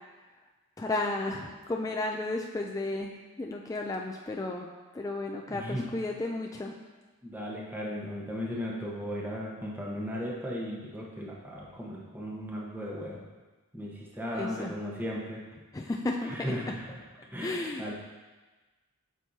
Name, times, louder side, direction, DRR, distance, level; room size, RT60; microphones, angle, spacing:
voice 1, 0.8-4.7 4.9-6.7 14.3-14.7 15.7-17.0 17.4-17.9, left 2 dB, 15° left, 0 dB, 0.3 m, -33 dB
voice 2, 5.5-5.9 7.2-13.2 13.7-15.4 16.3-16.8 17.3-17.9, equal, 10° right, -4 dB, 1.2 m, -36 dB
8.1 x 6.1 x 2.8 m, 1.3 s
head